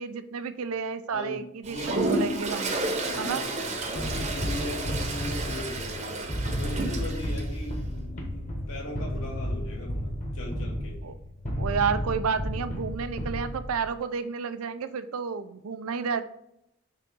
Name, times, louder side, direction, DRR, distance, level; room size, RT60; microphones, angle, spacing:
voice 1, 0.0-2.7 3.2-3.4 11.0-11.1 11.6-16.2, right 6 dB, 90° right, 11 dB, 0.5 m, -31 dB
voice 2, 1.1-2.4 3.0-6.2 6.6-11.0, left 1 dB, 75° left, -2 dB, 2.2 m, -39 dB
Toilet flush, 1.6-7.5, right 2 dB, 35° right, 0.8 m, -31 dB
sound 1, 4.0-13.9, equal, 35° left, 1.2 m, -33 dB
5.7 x 3.5 x 5.2 m, 0.78 s
head